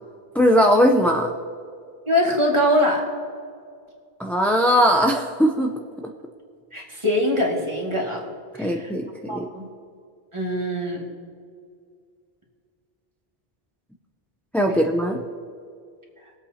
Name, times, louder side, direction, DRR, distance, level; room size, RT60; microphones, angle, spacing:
voice 1, 0.3-1.3 4.2-5.7 8.6-9.5 14.5-15.2, equal, ahead, 2 dB, 0.5 m, -19 dB
voice 2, 2.1-3.1 6.7-8.2 8.6-8.9 9.3-9.6 10.3-11.0, left 1 dB, 25° right, -2 dB, 2.2 m, -22 dB
21.5 x 8.2 x 2.9 m, 2.2 s
omnidirectional pair, 1.1 m